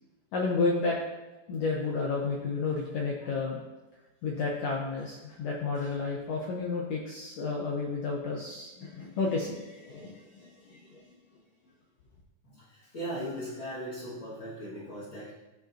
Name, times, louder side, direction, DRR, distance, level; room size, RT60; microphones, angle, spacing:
voice 1, 0.3-1.0 1.5-3.6 4.2-11.0, left 4 dB, 85° left, -1 dB, 1.4 m, -31 dB
voice 2, 12.4-15.3, equal, 45° left, -9 dB, 2.0 m, -38 dB
14.0 x 5.1 x 2.6 m, 1.1 s
omnidirectional pair, 4.0 m